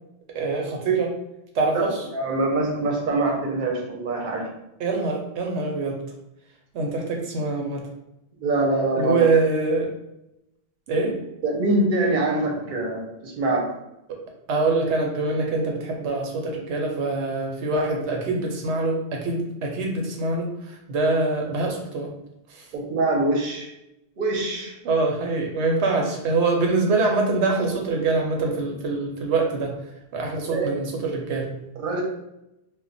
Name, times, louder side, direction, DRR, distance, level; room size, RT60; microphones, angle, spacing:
voice 1, 0.3-1.1 1.5-2.0 4.8-6.0 6.7-7.8 9.0-9.9 10.9-11.2 14.5-22.1 22.5-22.7 24.8-29.8 30.1-31.5, right 3 dB, 85° right, 1 dB, 0.9 m, -24 dB
voice 2, 2.1-4.5 8.4-9.2 11.4-13.7 22.7-23.7 24.2-24.7 30.5-30.7 31.8-32.0, right 2 dB, 55° right, 0 dB, 0.8 m, -24 dB
2.2 x 2.1 x 3.8 m, 0.86 s
omnidirectional pair, 1.1 m